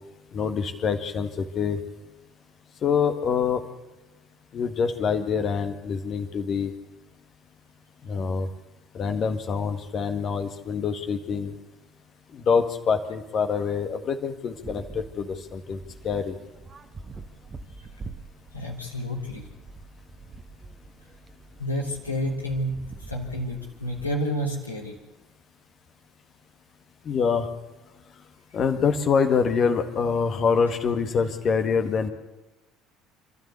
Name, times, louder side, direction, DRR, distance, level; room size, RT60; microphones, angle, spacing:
voice 1, 0.3-1.8 2.8-3.6 4.5-6.7 8.1-8.5 8.9-11.5 12.3-15.8 16.0-16.3 27.1-27.5 28.5-32.1, left 6 dB, 40° left, 6 dB, 1.8 m, -25 dB
sound 1, 14.5-24.2, right 3 dB, 30° right, 1.6 m, -45 dB
voice 2, 18.5-19.4 21.6-22.8 23.1-25.0, equal, 90° left, -3 dB, 2.9 m, -29 dB
27.0 x 13.0 x 8.3 m, 1.0 s
figure-of-eight pair, 60°, 0 cm